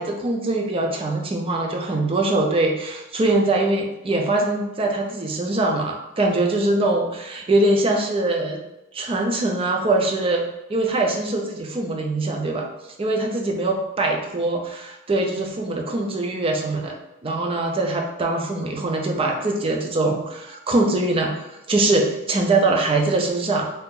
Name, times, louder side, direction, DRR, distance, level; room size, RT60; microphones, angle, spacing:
voice 1, 0.0-8.6 8.9-10.4 10.7-12.7 13.0-17.0 17.2-23.7, right 2 dB, 25° right, 1 dB, 0.4 m, -22 dB
2.7 x 2.4 x 3.6 m, 0.94 s
head